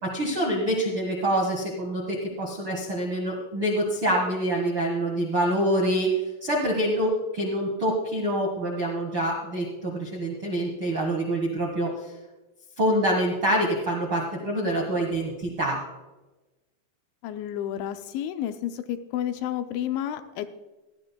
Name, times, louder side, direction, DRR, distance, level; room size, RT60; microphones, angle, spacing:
voice 1, 0.0-6.1 6.4-11.9 12.8-15.8, right 1 dB, 60° right, -2 dB, 1.3 m, -26 dB
voice 2, 17.2-20.5, left 11 dB, 80° left, 8 dB, 2.9 m, -31 dB
18.5 x 13.0 x 2.3 m, 1.1 s
omnidirectional pair, 5.5 m